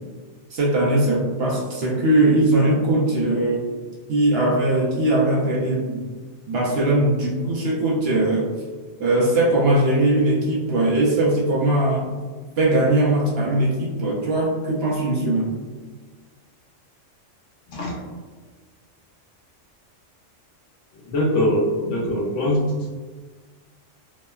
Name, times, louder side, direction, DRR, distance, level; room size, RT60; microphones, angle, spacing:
voice 1, 0.5-3.7 4.1-6.0 6.5-8.5 9.0-12.1 12.6-15.5, right 1 dB, 65° right, -4 dB, 0.7 m, -20 dB
voice 2, 20.9-22.6, left 1 dB, 75° left, -3 dB, 1.0 m, -22 dB
2.9 x 2.1 x 2.2 m, 1.4 s
omnidirectional pair, 1.3 m